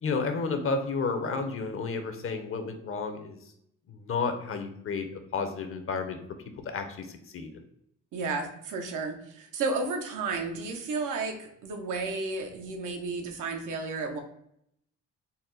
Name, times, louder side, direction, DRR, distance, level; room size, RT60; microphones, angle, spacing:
voice 1, 0.0-3.4 3.9-6.2 6.7-7.6, left 4 dB, 45° left, 7 dB, 0.7 m, -31 dB
voice 2, 8.1-14.2, right 3 dB, 85° right, 4 dB, 0.8 m, -32 dB
4.1 x 2.1 x 3.8 m, 0.72 s
cardioid pair, 90°, 30 cm